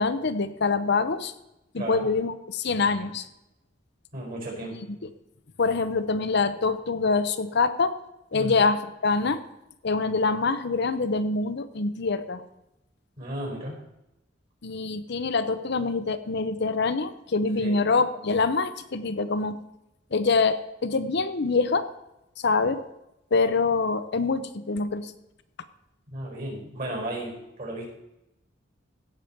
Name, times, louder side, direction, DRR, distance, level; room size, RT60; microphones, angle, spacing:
voice 1, 0.0-1.3 1.7-3.3 5.0-5.1 5.6-7.9 8.3-9.4 9.8-12.4 14.6-19.6 20.1-21.9 22.4-22.8 23.3-25.1, left 4 dB, 60° left, 11 dB, 0.7 m, -25 dB
voice 2, 1.8-2.1 4.1-4.8 8.3-8.6 13.2-13.8 17.6-17.8 26.1-27.9, right 1 dB, 45° right, 0 dB, 4.9 m, -34 dB
16.5 x 6.9 x 4.5 m, 0.89 s
head